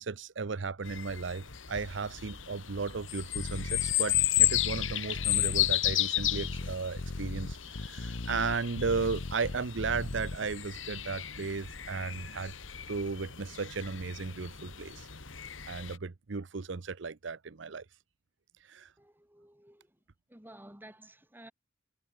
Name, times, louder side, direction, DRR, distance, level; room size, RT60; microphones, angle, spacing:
voice 1, 0.0-12.5 12.9-15.1 15.7-17.8 18.6-18.9, right 4 dB, 65° right, 0.7 m, -35 dB
sound 1, 0.8-16.0, left 13 dB, 85° left, 2.7 m, -33 dB
sound 2, 3.3-10.4, left 2 dB, 60° left, 1.0 m, -37 dB
voice 2, 19.0-20.0 20.3-21.5, right 1 dB, 10° right, 5.0 m, -53 dB
head